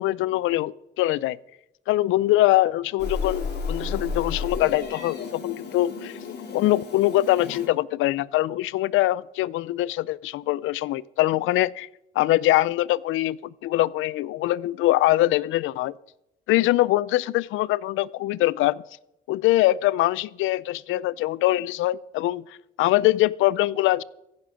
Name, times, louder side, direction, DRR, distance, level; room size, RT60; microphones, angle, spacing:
voice 1, 0.0-1.4 1.9-11.9 12.2-15.9 16.5-18.8 19.3-22.4 22.8-24.0, left 16 dB, 90° left, 0.4 m, -23 dB
Meow, 3.0-7.7, left 4 dB, 60° left, 3.3 m, -33 dB
15.0 x 11.5 x 5.1 m
cardioid pair, 90°, 20 cm